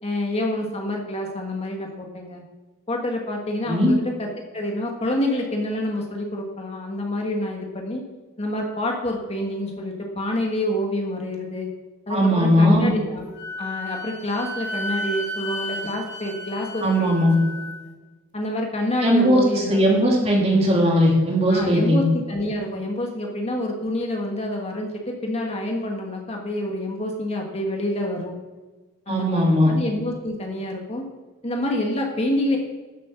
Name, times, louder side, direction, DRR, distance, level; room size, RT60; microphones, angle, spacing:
voice 1, 0.0-2.4 2.9-8.0 8.4-11.7 12.1-17.3 18.3-19.9 21.5-28.4 29.1-31.0 31.4-32.6, left 1 dB, 30° left, 1 dB, 1.5 m, -27 dB
voice 2, 12.1-12.9 16.8-17.4 19.0-22.0 29.1-29.7, equal, 30° right, -1 dB, 2.7 m, -18 dB
Wind instrument woodwind instrument, 13.3-17.8, equal, 55° left, 2.5 m, -33 dB
12.0 x 7.6 x 6.0 m, 1.2 s
head